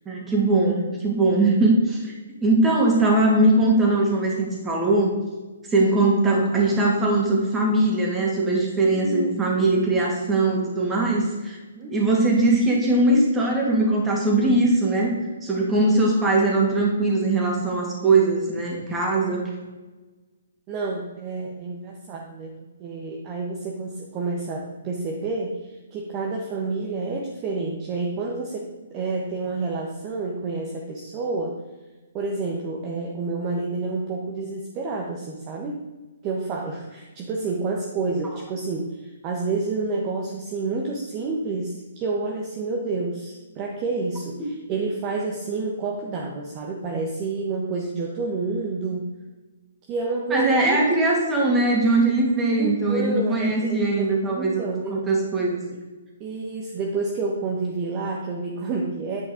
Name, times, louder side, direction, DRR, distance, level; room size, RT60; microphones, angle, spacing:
voice 1, 0.1-2.1 2.4-5.2 5.7-11.6 11.9-15.1 15.4-19.5 50.3-55.6, right 2 dB, 15° right, -2 dB, 2.4 m, -21 dB
voice 2, 8.8-9.7 11.8-11.9 15.8-16.0 19.3-19.4 20.7-22.5 22.8-31.6 32.1-35.8 36.2-49.1 49.9-50.8 52.6-55.0 56.2-59.2, right 3 dB, 30° right, -1 dB, 1.2 m, -29 dB
9.6 x 5.3 x 5.0 m, 1.2 s
hypercardioid pair, 140°, 0 cm